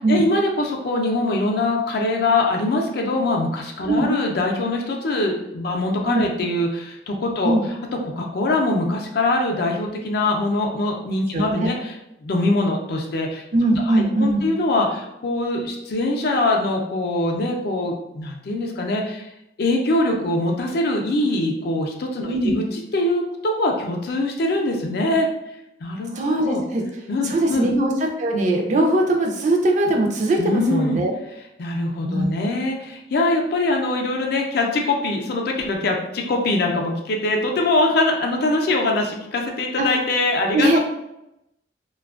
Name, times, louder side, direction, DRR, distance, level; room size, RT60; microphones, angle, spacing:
voice 1, 0.0-7.8 8.0-13.4 13.9-19.3 19.6-25.3 25.8-26.6 27.1-27.7 30.4-31.0 31.6-40.8, left 2 dB, 60° left, 1 dB, 0.4 m, -23 dB
voice 2, 11.3-11.7 13.5-14.5 22.3-22.5 26.1-26.8 27.2-31.1 31.9-32.3 39.8-39.9 40.5-40.8, right 1 dB, 40° right, 1 dB, 0.4 m, -20 dB
2.5 x 2.2 x 2.3 m, 0.86 s
head